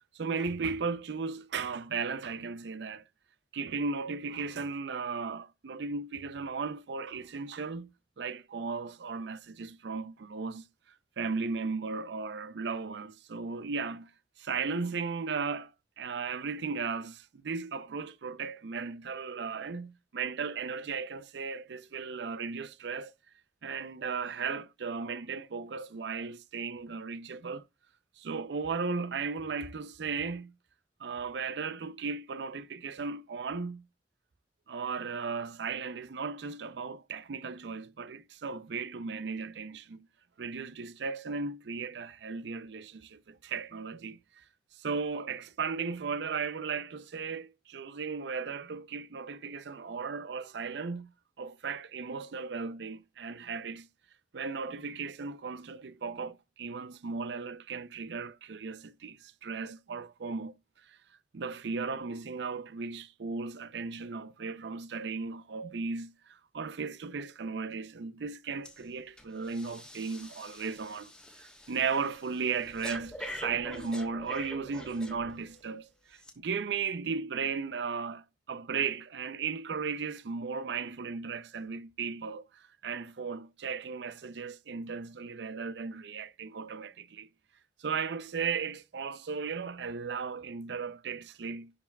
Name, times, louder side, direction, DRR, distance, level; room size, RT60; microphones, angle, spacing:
voice 1, 0.1-3.1 3.5-7.9 8.2-10.6 11.2-14.1 14.4-15.7 16.0-23.1 23.6-27.6 28.2-30.5 31.0-33.8 34.7-40.1 40.4-44.2 44.7-51.1 51.4-53.9 54.3-60.5 60.9-61.0 61.3-71.1 71.4-87.3 87.8-91.7, right 5 dB, 70° right, 0.5 m, -36 dB
Breathing, 68.6-68.8 69.2-75.6 76.2-76.3, left 1 dB, 5° left, 1.1 m, -46 dB
11.0 x 4.6 x 2.2 m
head